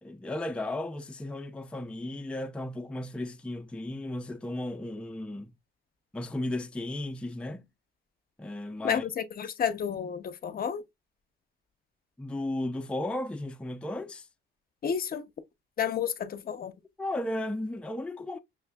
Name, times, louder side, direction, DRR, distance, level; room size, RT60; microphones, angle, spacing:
voice 1, 0.0-5.5 6.1-7.7 8.4-9.1 9.5-9.6 12.2-14.3 17.0-18.4, left 1 dB, 5° left, 0.4 m, -35 dB
voice 2, 8.8-10.8 14.8-15.2 15.8-16.7, left 8 dB, 50° left, 0.6 m, -31 dB
6.2 x 2.5 x 2.2 m
cardioid pair, 90°, 20 cm